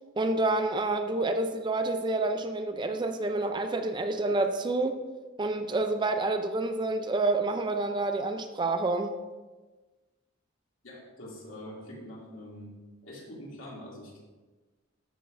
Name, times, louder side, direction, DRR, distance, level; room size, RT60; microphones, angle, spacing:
voice 1, 0.2-5.0 5.4-9.1, right 2 dB, 20° right, 7 dB, 0.4 m, -28 dB
voice 2, 10.8-12.7 13.0-14.2, left 1 dB, 65° left, -4 dB, 2.6 m, -44 dB
13.5 x 6.6 x 2.6 m, 1.3 s
head